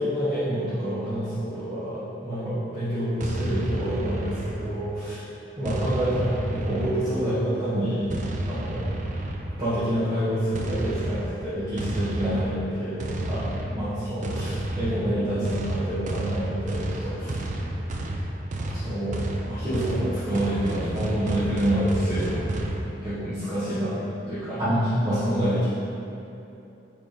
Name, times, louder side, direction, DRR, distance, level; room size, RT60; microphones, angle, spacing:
voice 1, 0.0-5.2 5.6-8.9 9.6-17.4 18.6-22.7 23.0-24.0 24.3-25.7, equal, 25° right, -15 dB, 1.4 m, -27 dB
sound 1, 3.2-5.0 5.6-7.4 8.1-9.7 10.5-22.8, right 1 dB, 45° right, 0.5 m, -31 dB
6.4 x 3.6 x 5.0 m, 2.8 s
head